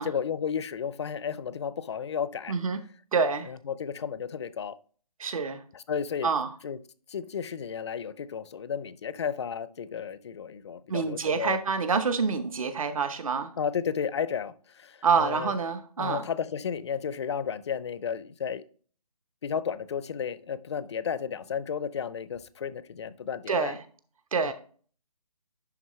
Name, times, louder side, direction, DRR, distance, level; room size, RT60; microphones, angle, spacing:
voice 1, 0.0-2.6 3.5-4.8 5.7-6.3 6.6-6.8 7.1-11.6 13.6-15.5 16.0-18.6 19.4-23.7 24.4-24.5, left 7 dB, 45° left, 0.5 m, -33 dB
voice 2, 2.5-2.8 3.1-3.5 5.2-5.6 6.2-6.5 10.9-13.5 15.0-16.3 23.5-23.8 24.3-24.5, right 5 dB, 60° right, 1.0 m, -27 dB
11.0 x 3.8 x 3.1 m
figure-of-eight pair, 155°, 20 cm